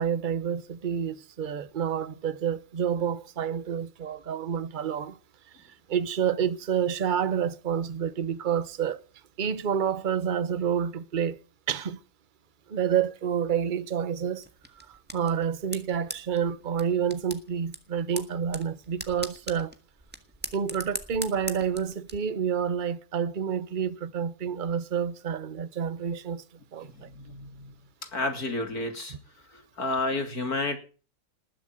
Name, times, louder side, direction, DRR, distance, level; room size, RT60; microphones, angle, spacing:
voice 1, 0.0-5.2 5.9-9.0 9.4-11.4 11.7-12.0 12.7-14.4 14.9-19.7 20.5-26.4 26.7-27.1, right 8 dB, 35° right, 0.8 m, -29 dB
sound 1, 14.4-22.1, right 1 dB, 5° right, 1.6 m, -41 dB
voice 2, 26.8-27.7 28.1-29.1 29.5-30.8, left 2 dB, 50° left, 3.4 m, -31 dB
20.0 x 7.4 x 9.3 m
omnidirectional pair, 2.0 m